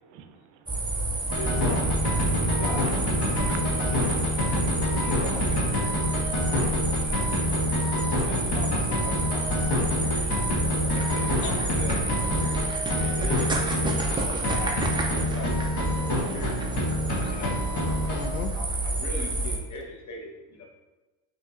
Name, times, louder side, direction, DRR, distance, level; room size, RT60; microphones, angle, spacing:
voice 1, 0.0-0.8 2.4-2.6 3.3-4.9, right 7 dB, 65° right, 7 dB, 0.6 m, -48 dB
sound 1, 0.7-19.6, right 2 dB, 10° right, 0.3 m, -29 dB
sound 2, 1.3-14.2 14.4-18.3, left 1 dB, 55° left, 1.1 m, -27 dB
voice 2, 1.4-1.9 2.4-3.0 3.2-4.0 5.0-5.9 7.0-7.8 8.2-9.8 10.0-10.5 11.1-12.0 12.9-13.6 14.2-14.9 15.3-16.6 17.3-18.1 18.5-20.7, left 2 dB, 35° left, -1 dB, 1.0 m, -40 dB
voice 3, 7.8-8.1 10.1-10.2 10.7-11.5 12.4-13.0 18.1-18.5, left 8 dB, 75° left, 7 dB, 0.6 m, -40 dB
5.2 x 3.0 x 2.4 m, 1.2 s
cardioid pair, 110°, 50 cm